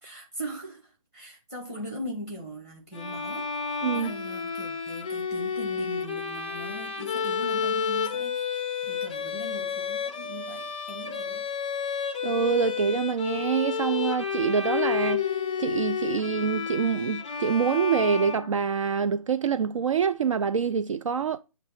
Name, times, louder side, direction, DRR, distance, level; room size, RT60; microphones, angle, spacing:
voice 1, 0.0-11.5, equal, 10° right, 1.3 m, -40 dB
Bowed string instrument, 2.9-18.9, left 6 dB, 15° left, 0.4 m, -31 dB
voice 2, 12.2-15.2 15.6-21.4, right 6 dB, 65° right, 0.4 m, -26 dB
6.4 x 3.0 x 5.7 m
hypercardioid pair, 170°, 18 cm